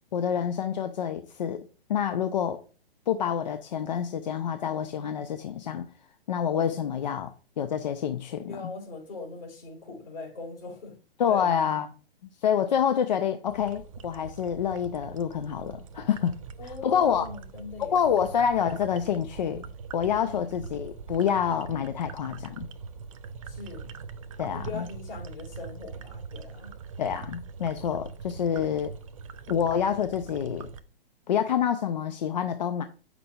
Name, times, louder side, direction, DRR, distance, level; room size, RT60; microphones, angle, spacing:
voice 1, 0.1-2.6 3.1-5.9 6.3-8.7 11.2-11.9 12.4-16.3 16.6-17.3 17.8-19.6 19.9-22.7 24.4-24.9 27.0-28.9 29.5-30.7 31.3-32.8, left 8 dB, 45° left, 0.6 m, -27 dB
voice 2, 8.4-11.0 11.3-11.5 16.6-18.1 20.2-20.4 23.5-23.9 24.5-26.7, left 3 dB, 65° left, 3.3 m, -41 dB
sound 1, 13.5-30.8, right 5 dB, 35° right, 0.4 m, -43 dB
8.3 x 6.0 x 2.3 m
figure-of-eight pair, 125°, 30 cm